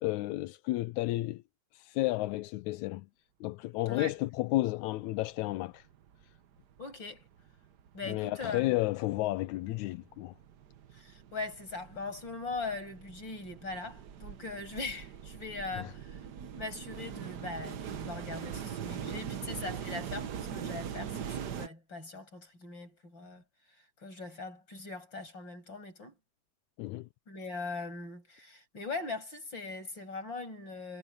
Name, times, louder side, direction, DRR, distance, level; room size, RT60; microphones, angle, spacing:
voice 1, 0.0-1.4 1.7-3.1 3.4-5.9 8.1-10.3 15.8-15.9 26.8-27.1, left 18 dB, 85° left, 2.0 m, -32 dB
sound 1, 5.0-5.1 5.4-6.4 6.7-21.7, right 8 dB, 80° right, 0.9 m, -42 dB
voice 2, 6.8-7.2 7.9-8.7 10.9-16.2 16.6-23.4 24.0-26.2 27.3-31.0, left 3 dB, 35° left, 8.3 m, -40 dB
omnidirectional pair, 3.3 m